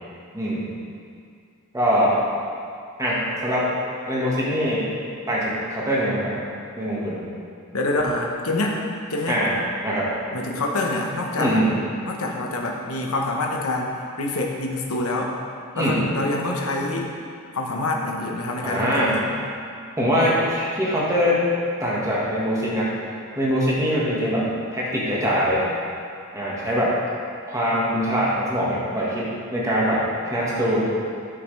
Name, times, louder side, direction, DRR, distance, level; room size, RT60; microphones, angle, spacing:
voice 1, 0.3-0.7 1.7-2.1 3.0-3.7 4.1-4.9 5.3-6.3 6.8-7.2 9.3-9.5 9.8-10.1 11.3-11.7 15.7-16.0 18.6-19.1 20.0-21.4 21.8-22.9 23.3-25.7 26.3-27.0 27.5-30.9, equal, 15° right, -7 dB, 1.7 m, -23 dB
voice 2, 7.7-8.8 9.1-9.4 10.3-11.6 12.0-15.3 15.7-17.1 17.5-19.3, left 2 dB, 70° left, 0 dB, 1.1 m, -26 dB
12.5 x 5.8 x 3.3 m, 2.3 s
head